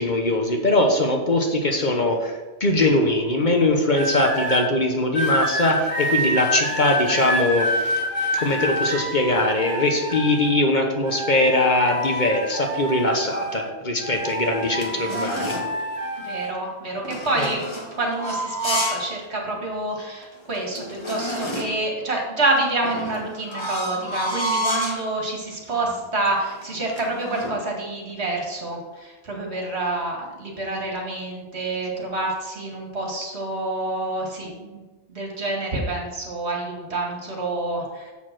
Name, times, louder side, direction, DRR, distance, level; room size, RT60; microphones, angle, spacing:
voice 1, 0.0-7.9 8.3-15.5 17.3-17.5, left 2 dB, 45° left, 2 dB, 1.1 m, -21 dB
sound 1, 3.9-4.6 5.1-10.7 11.0-13.7 14.0-16.5 17.3-17.6, equal, 10° left, 3.1 m, -27 dB
sound 2, 14.1-15.8 17.0-19.1 19.5-19.6 20.2-20.3 20.5-21.9 22.8-25.1 25.7-26.0 26.3-27.6, equal, 25° left, 1.2 m, -30 dB
voice 2, 16.2-17.6 18.0-34.8 35.1-38.1, right 2 dB, 65° right, 0 dB, 2.2 m, -27 dB
7.2 x 6.6 x 6.0 m, 1.2 s
omnidirectional pair, 1.2 m